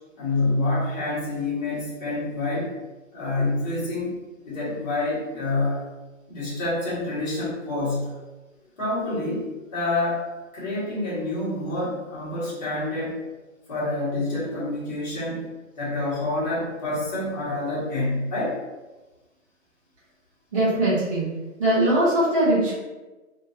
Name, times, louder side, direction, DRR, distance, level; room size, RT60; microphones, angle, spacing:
voice 1, 0.2-2.7 3.1-4.1 4.4-5.8 6.3-8.1 8.8-10.3 10.5-13.2 13.7-18.6, left 2 dB, 30° left, -9 dB, 1.5 m, -27 dB
voice 2, 20.5-21.3 21.6-22.7, right 1 dB, 25° right, -11 dB, 0.8 m, -21 dB
2.8 x 2.7 x 2.5 m, 1.2 s
hypercardioid pair, 170°, 41 cm